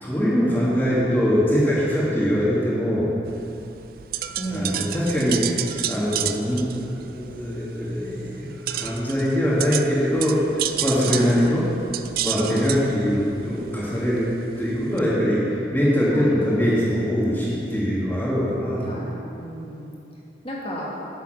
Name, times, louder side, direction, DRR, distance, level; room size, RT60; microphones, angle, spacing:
voice 1, 0.0-3.1 4.5-5.6 5.9-11.7 12.2-18.9, equal, 10° left, -8 dB, 1.9 m, -22 dB
sound 1, 3.3-15.0, right 11 dB, 50° right, 0.3 m, -32 dB
voice 2, 4.4-4.8 11.1-11.3 12.5-12.6 16.2-16.7 18.9-19.9 20.4-20.9, right 1 dB, 30° left, -4 dB, 1.6 m, -33 dB
8.3 x 7.1 x 6.5 m, 2.8 s
head